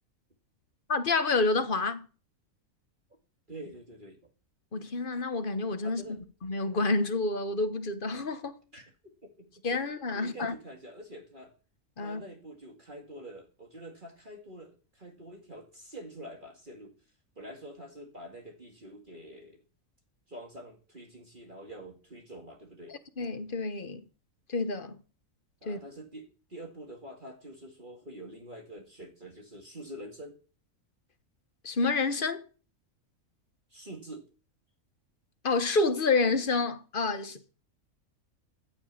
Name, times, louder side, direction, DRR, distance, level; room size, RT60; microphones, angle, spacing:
voice 1, 0.9-2.1 4.7-6.0 6.4-8.6 9.6-10.5 12.0-12.2 23.2-24.0 24.5-25.0 25.7-25.8 31.6-32.4 35.4-37.5, left 3 dB, 40° left, 1.3 m, -28 dB
voice 2, 3.5-4.2 5.8-6.2 8.7-9.5 10.1-11.5 12.0-16.9 17.4-19.6 20.3-23.0 25.6-30.4 33.7-34.3, right 1 dB, 35° right, 2.2 m, -46 dB
15.5 x 6.1 x 8.2 m
omnidirectional pair, 1.4 m